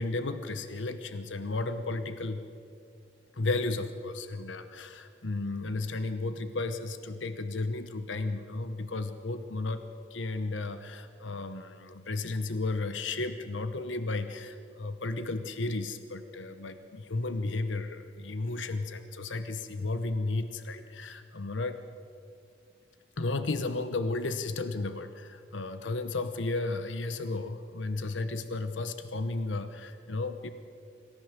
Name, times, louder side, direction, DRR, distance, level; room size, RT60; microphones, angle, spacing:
voice 1, 0.0-2.4 3.4-21.8 23.2-30.5, left 2 dB, 75° left, 10 dB, 1.0 m, -33 dB
26.0 x 14.5 x 7.5 m, 2.5 s
head